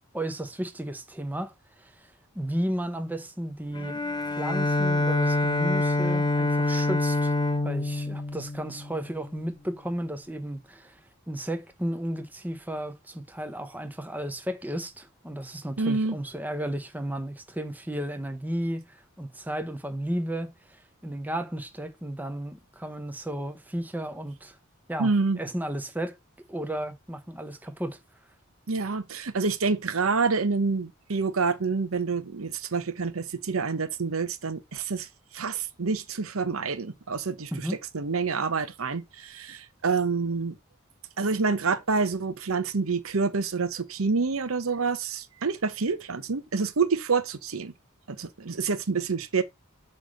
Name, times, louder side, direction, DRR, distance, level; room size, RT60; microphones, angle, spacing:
voice 1, 0.1-4.0 4.3-7.3 7.6-11.0 11.3-24.6 24.9-26.2 26.5-28.0 37.5-37.8, right 1 dB, 10° right, 1.0 m, -33 dB
Bowed string instrument, 3.7-9.3, left 2 dB, 20° left, 0.6 m, -26 dB
voice 2, 15.8-16.2 25.0-25.4 28.7-35.1 35.3-40.6 41.2-47.7 48.1-49.4, right 4 dB, 75° right, 0.9 m, -27 dB
8.0 x 3.2 x 6.4 m
head